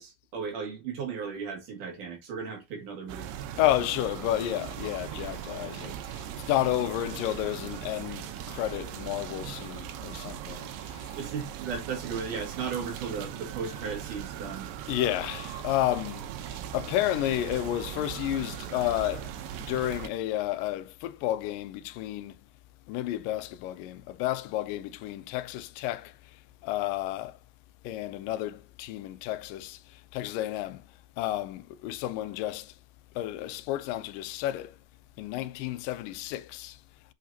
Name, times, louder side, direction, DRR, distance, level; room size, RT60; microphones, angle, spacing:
voice 1, 0.0-3.3 11.1-14.7, right 6 dB, 70° right, 3.7 m, -36 dB
sound 1, 3.1-20.1, right 10 dB, 90° right, 2.6 m, -39 dB
voice 2, 3.6-6.0 6.4-11.0 14.9-16.3 16.7-19.3 19.7-22.3 22.9-26.1 26.6-27.3 27.8-29.8 30.1-30.8 31.2-32.7 33.2-34.7 35.2-36.8, left 14 dB, 85° left, 2.3 m, -31 dB
8.1 x 5.1 x 2.8 m
omnidirectional pair, 3.9 m